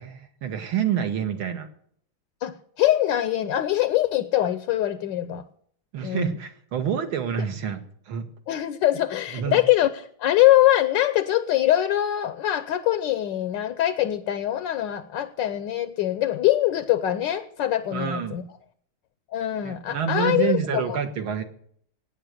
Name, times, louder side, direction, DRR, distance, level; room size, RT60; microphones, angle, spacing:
voice 1, 0.0-1.7 5.9-7.8 8.1-8.3 9.3-9.6 17.9-18.4 19.6-21.4, right 8 dB, 70° right, 2.3 m, -27 dB
voice 2, 2.4-5.4 6.0-6.4 8.5-18.4 19.3-21.0, left 13 dB, 65° left, 1.3 m, -23 dB
17.0 x 9.3 x 6.5 m
omnidirectional pair, 2.3 m